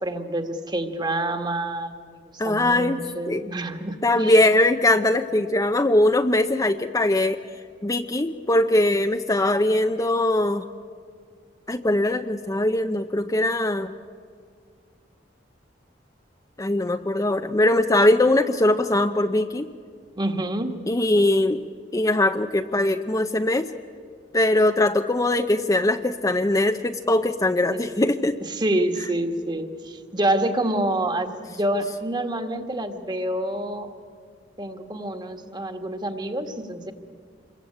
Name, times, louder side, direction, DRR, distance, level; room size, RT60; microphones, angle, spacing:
voice 1, 0.0-2.1 2.4-4.3 20.2-20.8 27.7-27.8 28.4-33.9 34.6-36.9, right 1 dB, 25° right, 7 dB, 1.7 m, -27 dB
voice 2, 2.4-3.4 4.0-7.4 7.8-10.6 11.7-13.9 16.6-19.7 20.9-21.6 21.9-23.7 24.3-28.4, left 1 dB, 20° left, 7 dB, 0.6 m, -21 dB
26.5 x 22.0 x 8.7 m, 2.1 s
head